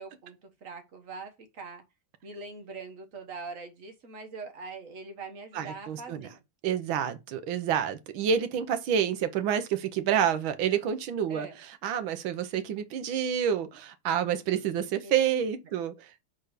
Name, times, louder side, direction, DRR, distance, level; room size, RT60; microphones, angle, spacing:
voice 1, 0.0-1.8 2.2-6.4 11.3-11.6 15.0-15.1, right 4 dB, 40° right, 1.5 m, -42 dB
voice 2, 5.5-6.3 6.6-16.2, right 8 dB, 70° right, 1.6 m, -28 dB
5.6 x 4.2 x 4.9 m
omnidirectional pair, 2.4 m